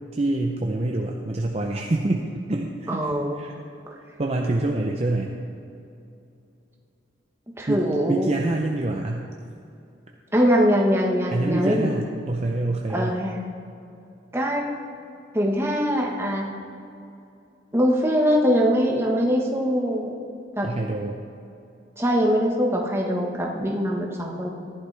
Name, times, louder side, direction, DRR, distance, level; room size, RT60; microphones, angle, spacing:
voice 1, 0.1-3.1 3.4-3.5 4.2-5.4 7.7-9.2 11.3-13.1 20.6-21.2, right 2 dB, 35° right, 1 dB, 0.6 m, -26 dB
voice 2, 2.9-3.4 3.9-4.0 7.6-8.3 10.3-12.0 12.9-13.4 14.3-14.7 15.3-16.5 17.7-20.1 20.6-20.7 22.0-24.5, equal, 15° right, -1 dB, 1.3 m, -22 dB
14.5 x 11.0 x 3.4 m, 2.6 s
head